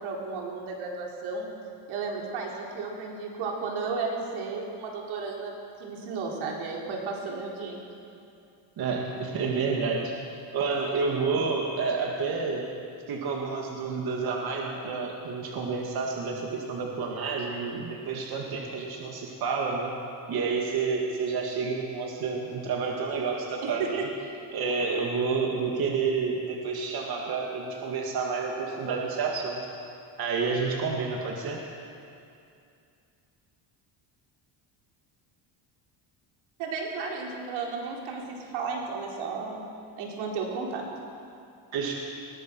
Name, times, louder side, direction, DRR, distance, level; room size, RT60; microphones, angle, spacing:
voice 1, 0.0-1.5 1.9-5.5 5.8-7.8 36.6-39.7 40.0-40.8, right 4 dB, 85° right, -1 dB, 4.2 m, -33 dB
voice 2, 8.8-10.1 10.5-12.7 13.1-19.9 20.3-24.1 24.5-29.7 30.2-31.6 41.7-41.9, right 4 dB, 50° right, 0 dB, 2.5 m, -29 dB
21.5 x 18.5 x 6.4 m, 2.5 s
cardioid pair, 140°, 47 cm